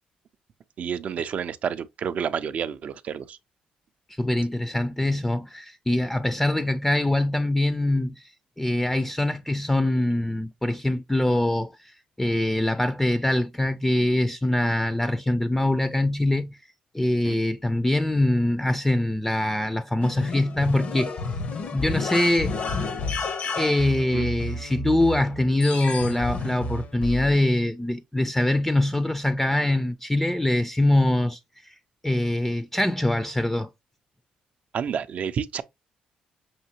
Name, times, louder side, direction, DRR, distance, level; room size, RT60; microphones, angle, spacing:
voice 1, 0.8-3.4 17.3-17.4 24.1-24.3 34.7-35.6, right 7 dB, 60° right, 0.4 m, -29 dB
voice 2, 4.1-8.3 8.6-16.6 16.9-21.2 21.7-22.6 23.6-31.8 32.0-33.7, left 1 dB, 10° left, 0.4 m, -23 dB
sound 1, 20.0-27.4, left 3 dB, 65° left, 0.8 m, -31 dB
5.7 x 2.8 x 2.7 m
supercardioid pair, 65°, 3 cm